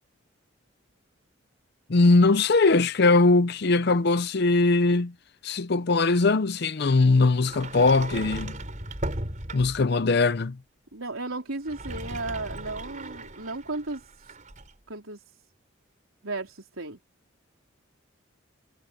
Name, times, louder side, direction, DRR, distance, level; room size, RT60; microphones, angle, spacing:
voice 1, 1.9-5.1 5.4-8.6 9.5-10.6, left 3 dB, 50° left, 0.6 m, -21 dB
Sliding door, 7.4-9.9 11.5-14.7, right 1 dB, 40° right, 4.5 m, -37 dB
voice 2, 10.9-14.0 14.9-15.2 16.2-17.0, right 2 dB, 80° right, 3.9 m, -34 dB
head